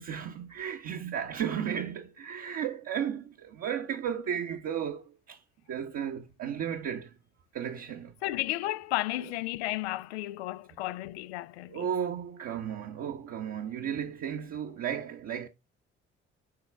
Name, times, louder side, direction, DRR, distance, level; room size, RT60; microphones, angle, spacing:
voice 1, 0.0-7.2 7.5-8.4 9.2-9.4 11.7-15.5, right 8 dB, 55° right, 1.2 m, -34 dB
voice 2, 8.2-11.8, left 16 dB, 80° left, 0.5 m, -33 dB
11.0 x 4.1 x 3.5 m
figure-of-eight pair, 45°, 32 cm